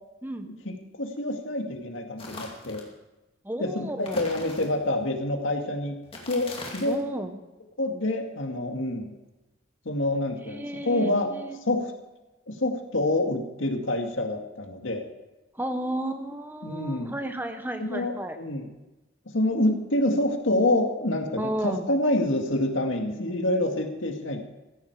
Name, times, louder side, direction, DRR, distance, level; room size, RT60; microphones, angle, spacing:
voice 1, 0.7-2.9 3.6-5.9 6.3-7.0 7.8-9.1 9.9-11.3 11.7-11.9 12.5-15.0 16.6-17.1 17.8-18.7 19.3-24.4, left 1 dB, 85° left, 3 dB, 2.1 m, -27 dB
sound 1, 2.2-2.9 4.0-5.0 6.0-7.1, left 2 dB, 30° left, 2.6 m, -41 dB
voice 2, 3.4-4.3 6.8-7.4 10.5-11.6 15.5-18.4 21.4-21.9, right 1 dB, 10° right, 7 dB, 1.0 m, -33 dB
15.5 x 14.0 x 4.8 m, 1.0 s
head